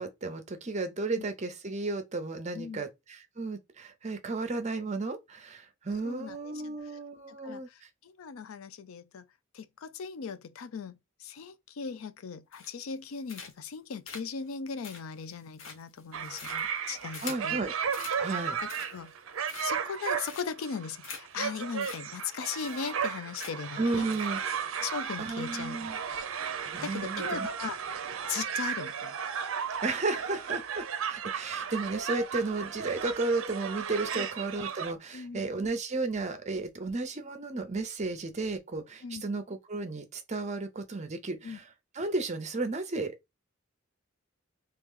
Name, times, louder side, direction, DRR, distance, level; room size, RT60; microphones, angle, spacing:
voice 1, 0.0-7.9 17.2-17.7 18.2-18.6 23.8-24.4 25.2-26.0 26.6-27.5 29.8-41.6 41.9-43.2, right 3 dB, 35° right, 0.7 m, -33 dB
voice 2, 6.0-6.5 6.8-7.0 7.3-9.3 9.5-17.6 18.2-18.3 18.9-19.1 19.6-24.1 24.8-25.8 26.8-27.8 28.3-29.1 34.1-34.3 35.1-35.4 39.0-39.2 41.4-41.6, left 6 dB, 85° left, 0.4 m, -38 dB
sound 1, 12.5-12.9 13.3-13.7 14.1-17.5 17.9-18.2 18.6-19.1 19.5-19.9 20.3-20.7 21.0-21.2 21.5-21.6 21.8-22.0 22.3-22.4 22.6-23.1 23.4-23.7 24.1-24.3, left 5 dB, 70° left, 0.9 m, -44 dB
sound 2, 16.1-34.9, right 7 dB, 75° right, 0.5 m, -35 dB
3.0 x 2.9 x 3.6 m
head